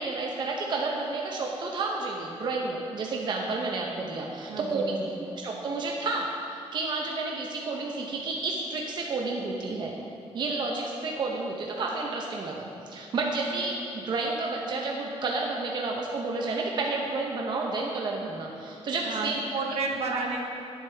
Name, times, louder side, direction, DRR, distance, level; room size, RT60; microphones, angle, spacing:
voice 1, 0.0-9.9 10.3-19.3 20.1-20.2, right 3 dB, 45° right, -1 dB, 0.7 m, -31 dB
voice 2, 4.5-5.2 19.0-20.5, right 3 dB, 75° right, 0 dB, 1.0 m, -32 dB
10.0 x 7.9 x 3.4 m, 2.6 s
wide cardioid pair, 170°, 11 cm